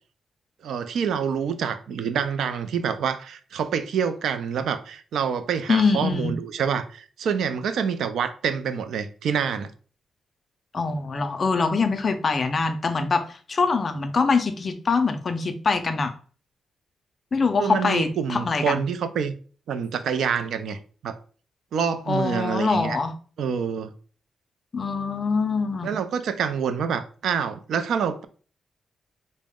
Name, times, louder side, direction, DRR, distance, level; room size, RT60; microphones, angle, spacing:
voice 1, 0.6-9.7 17.6-19.3 19.7-21.2 21.7-23.0 23.4-23.9 25.8-28.2, right 7 dB, 75° right, 0.4 m, -27 dB
voice 2, 5.7-6.3 10.7-16.1 17.3-18.8 22.1-23.1 24.7-25.9, left 4 dB, 30° left, 0.4 m, -24 dB
4.0 x 2.0 x 3.5 m
wide cardioid pair, 160°, 0 cm